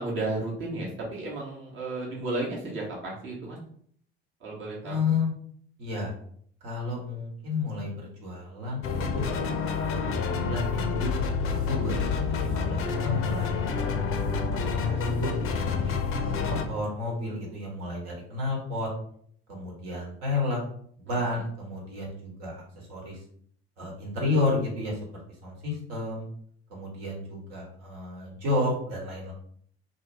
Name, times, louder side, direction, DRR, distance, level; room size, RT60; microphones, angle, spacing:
voice 1, 0.0-3.6 4.4-5.0 21.1-21.4, right 2 dB, 40° right, -4 dB, 1.0 m, -33 dB
voice 2, 4.8-5.3 5.8-6.1 6.6-9.3 9.6-10.1 10.4-11.1 11.5-15.3 15.8-18.9 19.5-20.6 21.0-23.2 23.8-26.3 26.7-29.3, left 3 dB, 60° right, -2 dB, 1.2 m, -32 dB
sound 1, 8.8-16.6, left 5 dB, 45° left, 0.5 m, -28 dB
2.7 x 2.3 x 3.3 m, 0.62 s
figure-of-eight pair, 55°, 31 cm